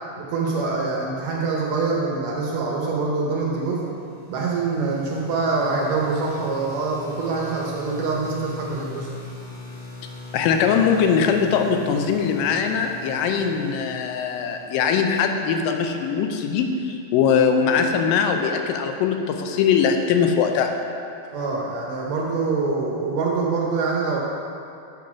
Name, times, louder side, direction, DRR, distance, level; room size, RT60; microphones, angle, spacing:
voice 1, 0.2-3.8 4.3-9.1 21.3-24.2, right 4 dB, 70° right, -2 dB, 1.7 m, -25 dB
sound 1, 3.7-15.5, left 2 dB, 70° left, 2.9 m, -42 dB
voice 2, 10.3-20.7, left 6 dB, 90° left, 5 dB, 2.2 m, -21 dB
7.4 x 4.1 x 5.8 m, 2.6 s
omnidirectional pair, 3.9 m